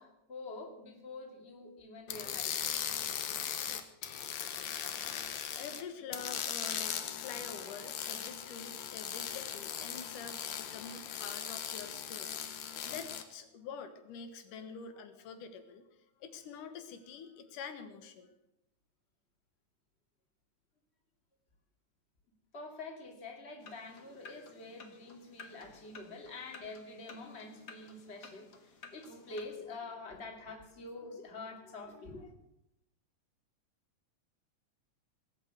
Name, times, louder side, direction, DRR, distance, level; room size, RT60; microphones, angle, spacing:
voice 1, 0.0-2.5 22.5-32.3, left 3 dB, 20° left, 2 dB, 2.7 m, -46 dB
sound 1, 2.1-5.8 6.1-13.2, left 9 dB, 65° left, 2.4 m, -39 dB
voice 2, 4.7-18.3, left 6 dB, 90° left, 8 dB, 3.0 m, -47 dB
sound 2, 23.6-29.4, left 4 dB, 40° left, 1.9 m, -54 dB
19.5 x 8.6 x 8.1 m, 0.83 s
omnidirectional pair, 3.6 m